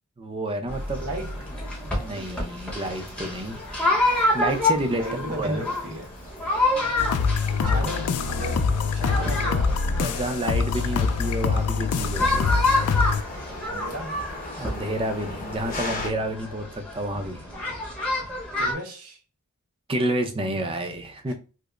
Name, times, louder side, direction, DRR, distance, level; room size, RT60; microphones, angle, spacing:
voice 1, 0.2-1.0 1.8-3.6 4.3-5.6 7.6-7.9 9.1-9.2 10.0-12.6 14.6-17.5 19.9-21.3, right 1 dB, 25° right, 0.5 m, -29 dB
sound 1, 0.7-16.1, left 2 dB, 40° left, 1.2 m, -41 dB
sound 2, 0.7-18.7, left 2 dB, 5° left, 0.9 m, -28 dB
voice 2, 1.0-1.4 4.9-6.1 7.6-9.8 10.1-10.5 13.7-14.2 18.6-19.2 21.3-21.4, right 1 dB, 80° right, 1.0 m, -35 dB
sound 3, 7.0-13.2, left 5 dB, 85° left, 0.3 m, -24 dB
4.9 x 2.0 x 2.4 m
head